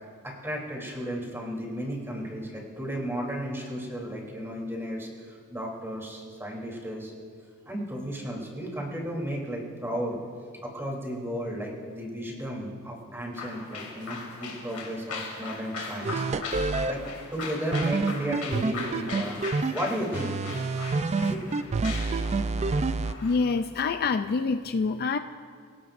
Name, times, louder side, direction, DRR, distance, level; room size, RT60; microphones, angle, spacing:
voice 1, 0.2-7.1 7.6-10.2 10.6-16.3 16.9-17.0 17.3-19.4 19.7-20.4 21.3-21.4, equal, 10° right, -2 dB, 3.2 m, -34 dB
sound 1, 13.3-23.6, left 4 dB, 80° left, 2.7 m, -39 dB
sound 2, 16.0-16.9 17.7-19.7 20.1-23.1, right 3 dB, 30° right, 0.4 m, -27 dB
voice 2, 23.2-25.2, left 4 dB, 45° left, 9 dB, 0.4 m, -26 dB
25.0 x 17.5 x 2.6 m, 2.1 s
head